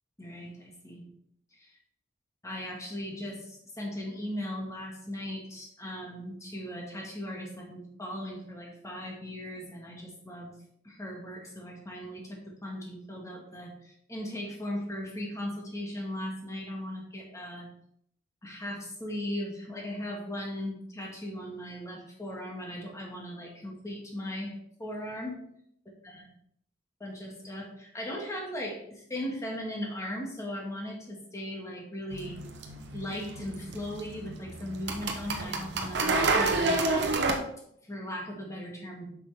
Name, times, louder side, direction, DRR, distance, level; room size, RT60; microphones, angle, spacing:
voice 1, 0.2-1.1 1.5-1.7 2.4-10.6 10.8-17.7 18.4-25.4 26.0-26.3 27.0-32.4 32.9-36.8 37.8-39.1, equal, 15° left, -1 dB, 1.8 m, -38 dB
sound 1, 32.1-37.4, right 3 dB, 65° right, 0.9 m, -29 dB
7.6 x 6.0 x 3.5 m, 0.72 s
head